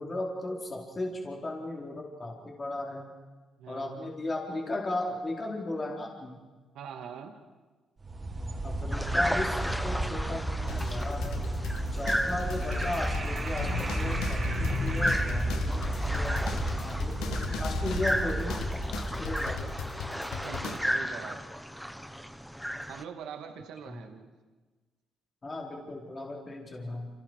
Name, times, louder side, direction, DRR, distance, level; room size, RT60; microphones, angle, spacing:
voice 1, 0.0-3.1 3.7-6.4 8.6-11.4 11.9-18.6 19.0-20.0 23.8-23.9 25.4-27.1, left 2 dB, 30° left, -1 dB, 4.4 m, -36 dB
voice 2, 3.6-4.1 6.7-7.3 20.4-21.4 22.9-24.3, right 7 dB, 80° right, 5 dB, 2.3 m, -43 dB
sound 1, 8.0-19.9, right 1 dB, 35° right, 4.4 m, -33 dB
sound 2, 8.9-23.0, equal, ahead, 1.2 m, -35 dB
sound 3, 10.7-20.8, left 6 dB, 85° left, 2.0 m, -37 dB
29.0 x 28.5 x 4.9 m, 1.3 s
cardioid pair, 90°, 0 cm